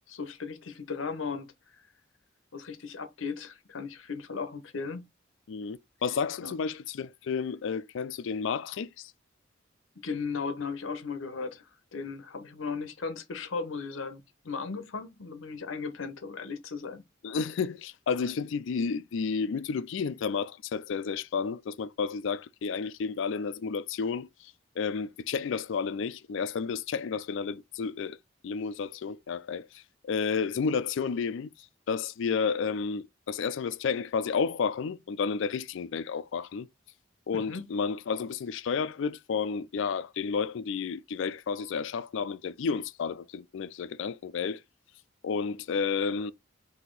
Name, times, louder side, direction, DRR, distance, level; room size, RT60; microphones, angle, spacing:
voice 1, 0.1-1.5 2.5-5.1 6.4-6.5 10.0-17.0 37.3-37.7, left 5 dB, 85° left, 0.8 m, -36 dB
voice 2, 5.5-9.1 17.2-28.2 28.4-31.5 31.9-36.7 37.3-44.6 45.2-46.3, left 5 dB, 70° left, 0.4 m, -31 dB
4.1 x 2.8 x 3.8 m
head